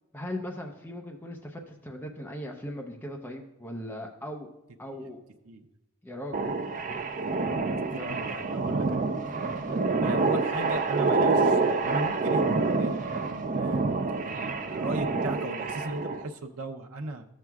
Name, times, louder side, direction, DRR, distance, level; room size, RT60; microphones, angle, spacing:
voice 1, 0.1-4.5 4.8-5.2 6.0-6.4 8.0-8.1 9.2-9.9, left 1 dB, 10° left, 0 dB, 0.6 m, -39 dB
sound 1, 6.3-16.2, right 3 dB, 35° right, 0.5 m, -27 dB
voice 2, 7.2-7.6 7.9-9.0 10.0-13.8 14.2-17.3, right 2 dB, 85° right, 5 dB, 0.7 m, -37 dB
13.5 x 7.5 x 2.4 m, 0.95 s
head